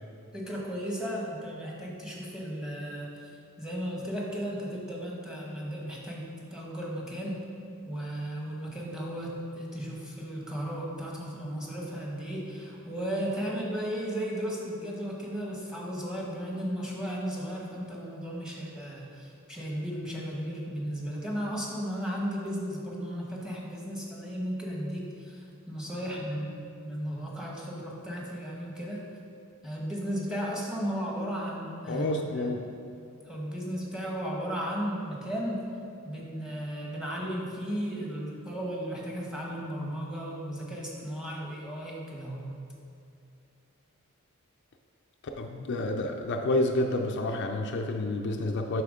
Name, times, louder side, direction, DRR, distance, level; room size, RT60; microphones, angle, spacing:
voice 1, 0.3-3.3 3.6-7.4 7.9-29.1 29.6-32.7 33.3-35.7 36.0-42.5, equal, 5° right, -3 dB, 1.1 m, -35 dB
voice 2, 31.9-32.6 45.4-48.8, left 1 dB, 55° left, 3 dB, 0.4 m, -29 dB
7.7 x 5.6 x 3.7 m, 2.6 s
head